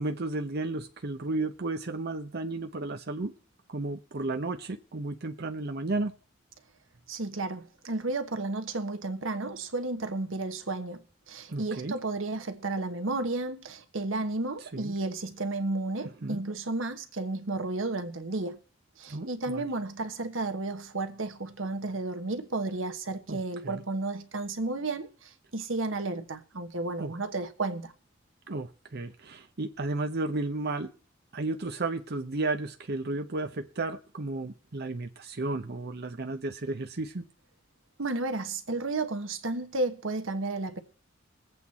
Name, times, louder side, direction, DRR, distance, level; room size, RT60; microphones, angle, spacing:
voice 1, 0.0-3.3 3.7-6.1 11.5-11.9 14.7-14.9 16.2-16.4 19.1-19.7 23.3-23.8 27.0-27.1 28.5-30.9 31.3-37.2, right 2 dB, 55° right, 0.8 m, -33 dB
voice 2, 7.1-18.6 19.0-27.9 38.0-40.8, right 2 dB, 85° right, 1.3 m, -32 dB
21.5 x 8.4 x 4.2 m
head